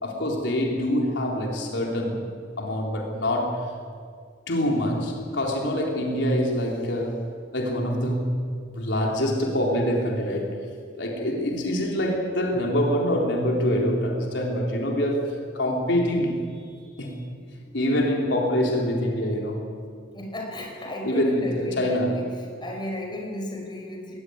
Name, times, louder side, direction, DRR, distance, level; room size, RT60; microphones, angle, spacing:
voice 1, 0.0-2.3 2.6-3.7 4.5-7.2 7.5-8.5 8.7-10.7 10.9-16.4 16.9-17.2 17.7-19.7 21.0-22.2, equal, 80° left, 0 dB, 3.7 m, -25 dB
voice 2, 20.1-22.3 22.6-24.1, left 1 dB, 25° left, 1 dB, 5.4 m, -34 dB
21.0 x 17.5 x 9.7 m, 2.2 s
head